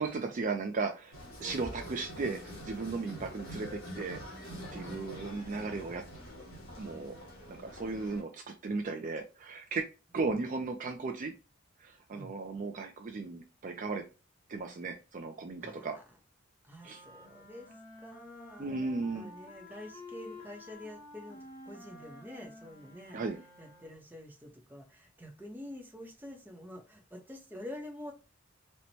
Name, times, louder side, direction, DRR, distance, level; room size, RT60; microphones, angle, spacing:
voice 1, 0.0-4.2 4.7-6.0 6.8-7.2 7.5-9.8 10.1-11.3 11.8-14.0 14.5-16.0 16.8-17.0 18.6-19.3 23.1-23.4, right 4 dB, 40° right, 0.4 m, -36 dB
sound 1, 1.1-8.2, equal, 75° left, 1.8 m, -45 dB
sound 2, 16.7-24.1, left 2 dB, 40° left, 1.1 m, -51 dB
voice 2, 16.7-17.7 18.0-21.4 21.7-23.2 23.6-28.1, left 1 dB, 10° right, 0.7 m, -47 dB
4.3 x 2.1 x 2.7 m
head